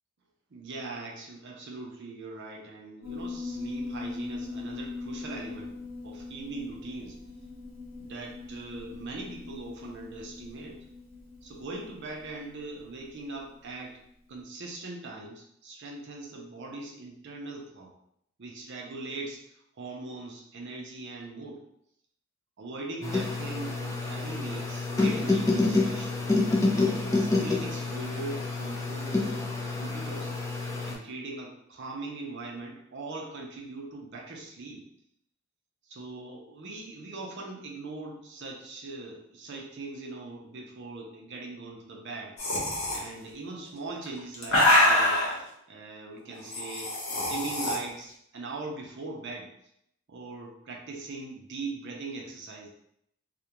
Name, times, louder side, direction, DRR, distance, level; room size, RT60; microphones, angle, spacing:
voice 1, 0.5-5.7 6.0-7.2 8.0-10.8 11.4-14.0 14.3-17.9 18.4-21.7 22.6-26.3 26.7-29.5 29.8-30.3 30.9-34.8 35.9-42.4 42.9-45.2 45.7-49.5 50.1-52.7, right 3 dB, 55° right, 0 dB, 0.5 m, -40 dB
Piano, 3.0-13.7, left 3 dB, 10° right, 0.7 m, -41 dB
sound 1, 23.0-30.9, left 3 dB, 15° left, 0.3 m, -28 dB
sound 2, 42.4-43.0 44.0-45.3 46.5-47.7, left 1 dB, 85° left, 0.7 m, -24 dB
2.3 x 2.1 x 2.8 m, 0.73 s
head